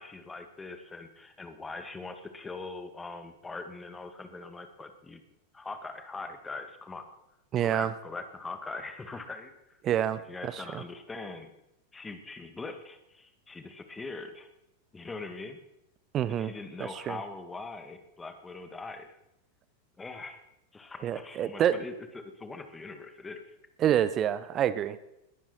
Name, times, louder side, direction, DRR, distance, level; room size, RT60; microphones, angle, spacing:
voice 1, 0.0-5.2 5.5-7.1 7.6-9.8 10.3-11.5 11.9-14.5 14.9-15.6 16.3-19.2 20.0-20.4 20.7-23.5, left 3 dB, 10° left, 7 dB, 2.2 m, -42 dB
voice 2, 7.5-7.9 9.8-10.8 16.1-16.5 17.1-17.2 21.0-21.8 23.8-25.0, right 10 dB, 30° right, 15 dB, 0.8 m, -27 dB
21.5 x 14.5 x 4.5 m, 0.86 s
figure-of-eight pair, 90°, 0 cm